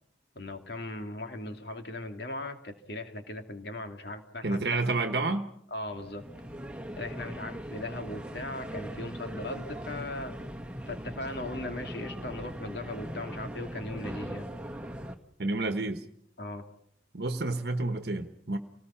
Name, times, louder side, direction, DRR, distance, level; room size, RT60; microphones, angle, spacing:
voice 1, 0.3-4.9 5.7-6.2 7.0-10.4 10.9-14.5 16.4-16.6, left 2 dB, 60° left, 5 dB, 2.7 m, -38 dB
voice 2, 4.4-5.5 15.4-16.0 17.1-18.6, right 2 dB, 60° right, 7 dB, 1.2 m, -29 dB
sound 1, 5.9-15.1, equal, 5° right, 1.7 m, -40 dB
29.0 x 19.0 x 5.8 m, 0.70 s
head